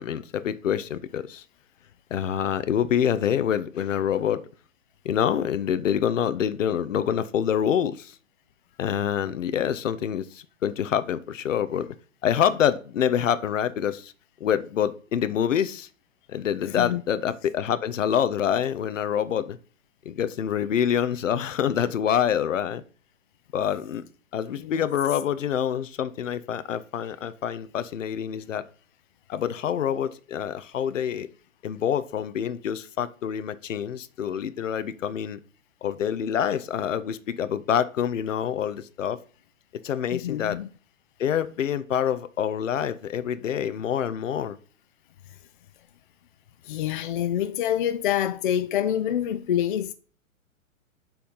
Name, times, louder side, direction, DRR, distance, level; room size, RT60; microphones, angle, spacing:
voice 1, 0.0-1.4 2.1-4.4 5.0-8.1 8.8-11.9 12.2-14.1 14.4-15.9 16.3-19.6 20.0-22.8 23.5-24.0 24.3-28.6 29.3-31.3 31.6-35.4 35.8-39.2 39.8-40.6 41.2-44.6, left 9 dB, 60° left, 0.8 m, -26 dB
voice 2, 40.1-40.7 46.6-49.9, left 10 dB, 40° left, 0.4 m, -26 dB
7.0 x 3.5 x 5.5 m
figure-of-eight pair, 115°, 42 cm